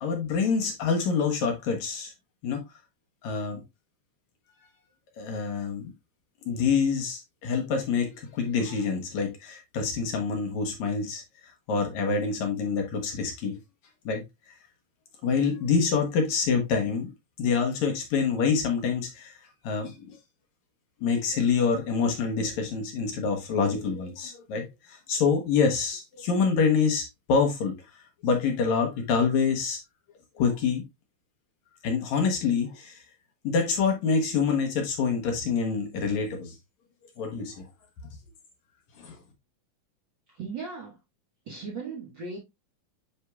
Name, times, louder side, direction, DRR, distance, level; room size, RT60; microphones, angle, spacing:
voice 1, 0.0-2.1 2.4-2.6 3.2-3.6 5.2-5.9 6.5-13.6 14.1-14.2 15.2-17.1 17.4-20.2 21.0-29.8 30.4-30.8 31.8-33.0 33.4-36.6 37.2-37.7 39.0-39.2, left 5 dB, 65° left, 2.2 m, -26 dB
voice 2, 40.3-41.0 41.5-42.4, right 4 dB, 45° right, 1.6 m, -37 dB
9.7 x 4.4 x 2.3 m
omnidirectional pair, 3.8 m